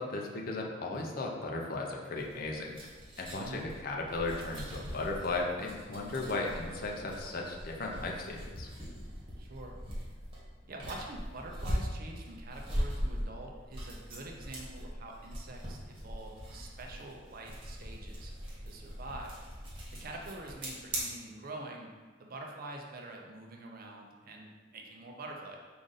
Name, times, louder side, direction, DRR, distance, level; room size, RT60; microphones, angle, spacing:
voice 1, 0.0-2.8 3.2-8.7, left 2 dB, 45° left, 0 dB, 0.6 m, -36 dB
sound 1, 2.2-21.0, equal, 25° right, 1.1 m, -41 dB
voice 2, 9.4-9.8 10.7-18.3 18.6-19.4 20.0-21.9 22.2-25.6, right 2 dB, 45° right, 1 dB, 0.5 m, -45 dB
5.0 x 2.5 x 3.9 m, 1.4 s
head